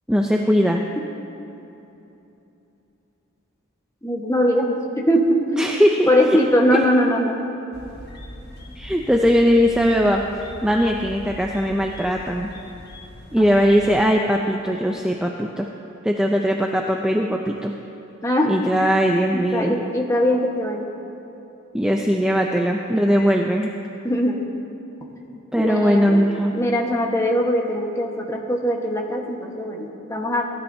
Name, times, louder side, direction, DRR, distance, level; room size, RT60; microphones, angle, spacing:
voice 1, 0.1-0.8 5.5-6.4 6.7-6.8 8.8-12.5 13.3-15.7 16.0-17.7 18.5-19.8 21.7-23.7 25.5-26.5, equal, 5° right, 1 dB, 0.4 m, -20 dB
voice 2, 4.0-5.5 6.1-7.4 13.5-13.7 18.2-18.5 19.3-20.8 24.0-24.5 25.5-26.2 26.5-30.4, equal, 15° left, 0 dB, 1.2 m, -21 dB
sound 1, 7.7-14.0, left 1 dB, 50° left, 1.2 m, -40 dB
18.5 x 12.5 x 2.7 m, 2.9 s
head